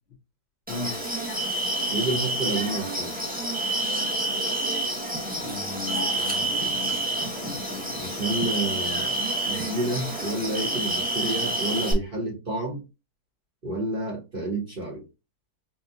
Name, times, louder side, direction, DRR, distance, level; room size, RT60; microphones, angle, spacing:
voice 1, 0.7-1.0 5.4-8.5, left 4 dB, 45° left, 1.0 m, -38 dB
sound 1, 0.7-11.9, right 1 dB, 10° right, 0.5 m, -28 dB
voice 2, 1.9-3.1 8.0-12.8 13.6-15.0, right 2 dB, 35° right, 1.3 m, -30 dB
5.1 x 2.3 x 2.6 m
omnidirectional pair, 1.7 m